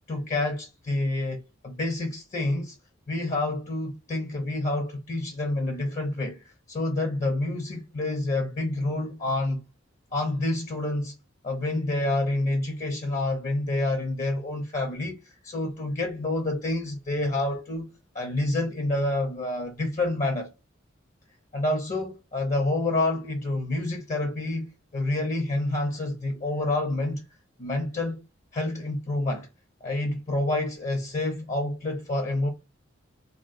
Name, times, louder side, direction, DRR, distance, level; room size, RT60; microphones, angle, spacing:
voice 1, 0.1-2.7 3.1-9.6 10.1-11.1 11.4-17.9 18.1-20.5 21.5-27.2 27.6-28.2 28.5-29.5 29.8-32.5, left 2 dB, 40° left, 0.5 m, -28 dB
3.5 x 2.1 x 2.5 m
head